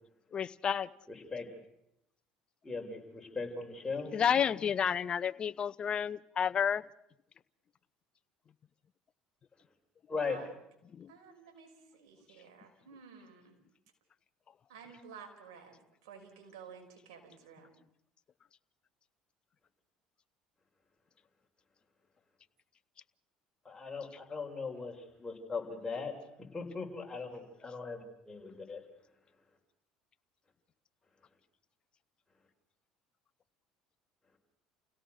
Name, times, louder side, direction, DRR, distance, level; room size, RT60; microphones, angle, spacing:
voice 1, 0.3-0.9 4.1-6.8 10.9-11.1, left 8 dB, 40° left, 14 dB, 0.8 m, -30 dB
voice 2, 1.1-1.5 2.6-4.1 10.1-10.4 23.6-26.1 26.5-28.8, left 4 dB, 15° left, 1 dB, 6.1 m, -39 dB
voice 3, 11.1-13.6 14.7-17.7, right 6 dB, 80° right, 3 dB, 5.8 m, -53 dB
29.5 x 17.0 x 6.6 m, 0.81 s
supercardioid pair, 80°, 3 cm